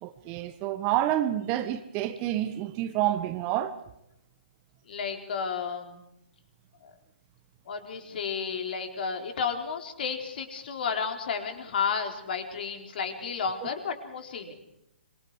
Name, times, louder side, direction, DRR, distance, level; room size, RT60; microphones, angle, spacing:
voice 1, 0.0-3.7, right 13 dB, 25° right, 11 dB, 1.3 m, -28 dB
voice 2, 4.9-6.0 6.8-6.9 7.7-14.5, left 6 dB, 55° left, 5 dB, 4.0 m, -32 dB
26.0 x 23.0 x 4.9 m, 0.81 s
hypercardioid pair, 140°, 6 cm